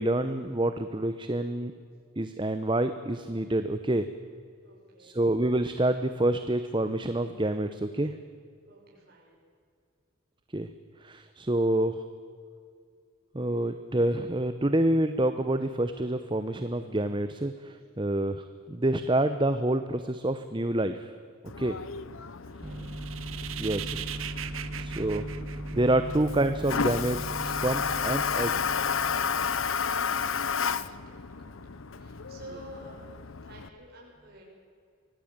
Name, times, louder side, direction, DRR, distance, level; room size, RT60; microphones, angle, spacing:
voice 1, 0.0-1.7 2.2-4.0 5.0-8.1 10.5-10.7 11.1-11.9 13.3-17.5 18.0-18.4 18.7-20.9 21.6-21.7 22.6-28.5, right 1 dB, 20° right, 10 dB, 0.8 m, -27 dB
voice 2, 4.6-5.2 8.6-9.4 22.4-22.9 30.1-33.2 33.4-34.4, right 1 dB, 45° right, -3 dB, 6.6 m, -51 dB
Toilet flush, 21.5-33.7, left 6 dB, 70° left, 0.8 m, -32 dB
sound 1, 22.7-26.3, right 11 dB, 70° right, 1.1 m, -39 dB
24.5 x 17.5 x 8.9 m, 2.3 s
head